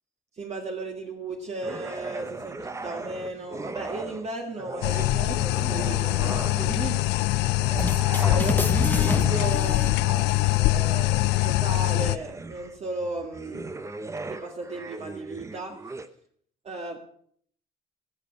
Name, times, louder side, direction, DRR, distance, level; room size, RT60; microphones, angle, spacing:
voice 1, 0.4-7.1 7.9-10.0 10.4-13.7 14.2-15.8 16.6-17.0, right 3 dB, 40° right, 2 dB, 1.9 m, -35 dB
sound 1, 1.6-4.3 4.6-7.0 7.5-16.1, right 3 dB, 15° right, 0.9 m, -39 dB
sound 2, 4.8-12.2, left 18 dB, 85° left, 0.5 m, -23 dB
sound 3, 7.7-10.6, left 2 dB, 10° left, 0.7 m, -28 dB
19.5 x 6.9 x 6.5 m, 0.62 s
cardioid pair, 110°, 17 cm